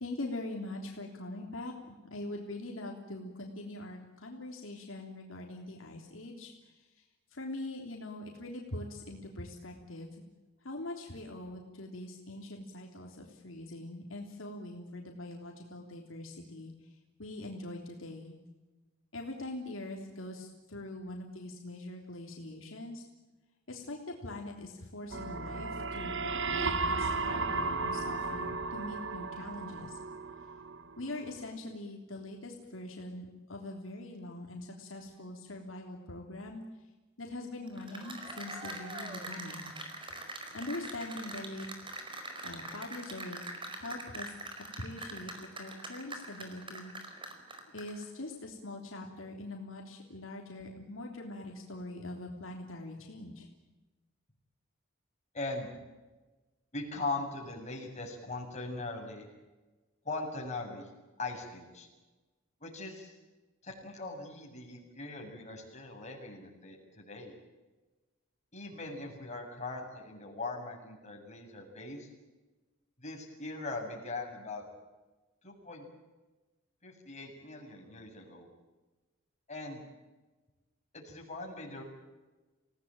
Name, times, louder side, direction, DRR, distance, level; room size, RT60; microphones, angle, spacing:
voice 1, 0.0-7.0 7.3-10.2 10.6-18.4 19.1-23.0 23.7-30.0 31.0-36.6 37.2-39.7 40.5-41.7 42.4-44.4 44.8-46.9 47.7-53.5, left 2 dB, 75° left, 1 dB, 3.4 m, -43 dB
sound 1, 25.1-31.0, right 3 dB, 65° right, 1.6 m, -34 dB
Cheering / Applause, 37.7-48.0, right 2 dB, 25° right, 4.9 m, -43 dB
voice 2, 55.3-55.7 56.7-59.3 60.0-60.9 61.2-61.9 62.6-63.1 63.6-67.3 68.5-72.1 73.0-74.7 75.4-75.9 76.8-78.5 79.5-79.8 80.9-81.8, left 3 dB, 35° left, 0 dB, 7.5 m, -40 dB
27.5 x 18.0 x 9.1 m, 1.2 s
head